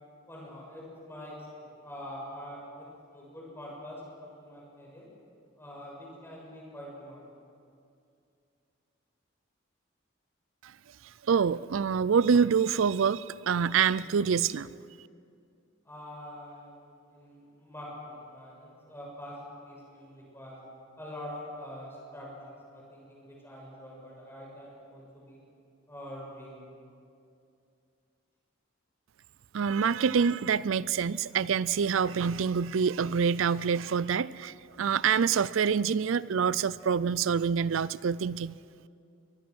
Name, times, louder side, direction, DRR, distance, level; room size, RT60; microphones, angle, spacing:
voice 1, 0.3-5.1 5.6-7.4 15.8-20.6 21.0-25.4 25.9-26.7, left 1 dB, 10° left, -3 dB, 6.4 m, -45 dB
voice 2, 11.3-14.7 29.5-38.6, right 6 dB, 70° right, 18 dB, 0.4 m, -26 dB
22.5 x 20.0 x 6.2 m, 2.5 s
head